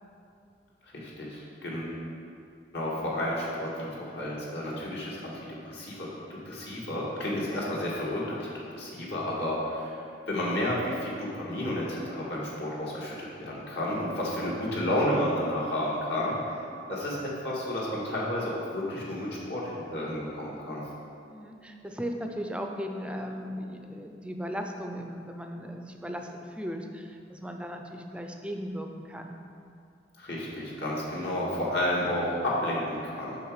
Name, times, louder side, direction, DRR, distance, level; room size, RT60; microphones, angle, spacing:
voice 1, 0.9-2.0 2.7-10.0 10.3-16.4 16.9-20.8 30.2-33.4, left 1 dB, 65° left, -5 dB, 1.9 m, -31 dB
voice 2, 21.3-29.4, equal, 5° right, 3 dB, 0.5 m, -37 dB
8.1 x 5.9 x 4.8 m, 2.5 s
head